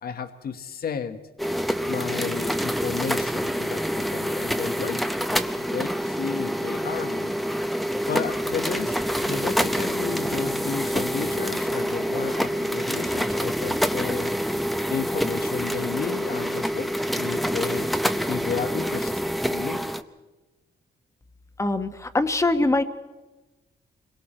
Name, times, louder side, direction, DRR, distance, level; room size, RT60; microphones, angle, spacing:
voice 1, 0.0-1.2 1.8-5.0 5.5-7.3 8.1-14.3 14.9-17.9 18.3-19.2 19.5-19.8, left 7 dB, 60° left, 8 dB, 1.3 m, -33 dB
sound 1, 1.4-20.0, equal, ahead, 0.7 m, -26 dB
voice 2, 21.6-22.8, left 2 dB, 15° left, 8 dB, 1.1 m, -23 dB
28.5 x 22.5 x 4.4 m, 1.2 s
wide cardioid pair, 150°, 18 cm